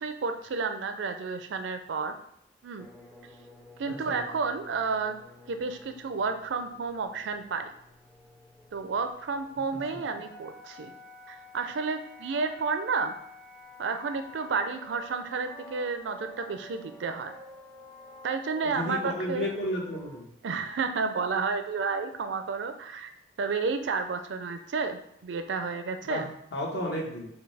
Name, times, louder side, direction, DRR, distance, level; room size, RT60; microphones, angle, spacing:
voice 1, 0.0-2.1 2.6-2.9 3.8-5.1 5.5-7.7 8.7-10.9 11.3-13.1 13.8-17.3 18.2-19.5 20.4-23.1 23.4-26.3, right 4 dB, 75° right, 7 dB, 0.4 m, -31 dB
sound 1, 2.8-20.2, left 2 dB, 5° left, 0.4 m, -50 dB
voice 2, 3.8-4.2 18.6-20.3 26.0-26.2 26.5-27.3, left 1 dB, 65° left, -2 dB, 1.2 m, -32 dB
5.7 x 2.3 x 3.3 m, 0.75 s
head